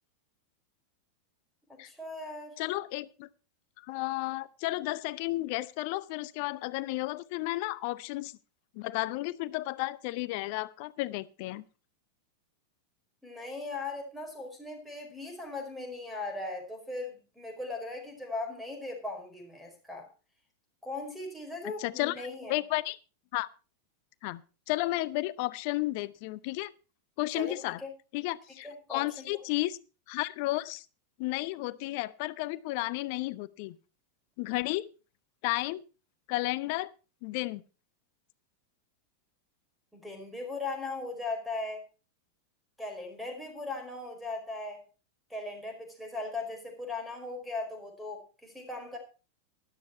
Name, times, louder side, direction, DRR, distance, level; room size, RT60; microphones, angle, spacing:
voice 1, 1.8-2.6 13.2-20.1 20.8-22.6 27.3-27.6 27.8-27.9 28.6-29.3 39.9-41.8 42.8-44.8 45.3-49.0, left 2 dB, ahead, 4 dB, 4.9 m, -38 dB
voice 2, 2.6-3.3 3.8-8.3 8.7-11.6 21.8-23.0 23.3-23.5 24.2-24.4 24.7-26.7 27.2-27.8 28.1-29.8 30.1-30.8 31.2-33.8 34.4-34.8 35.4-35.8 36.3-36.9 37.2-37.6, left 19 dB, 45° left, 19 dB, 0.7 m, -33 dB
12.5 x 12.0 x 4.5 m, 0.34 s
figure-of-eight pair, 90°, 0 cm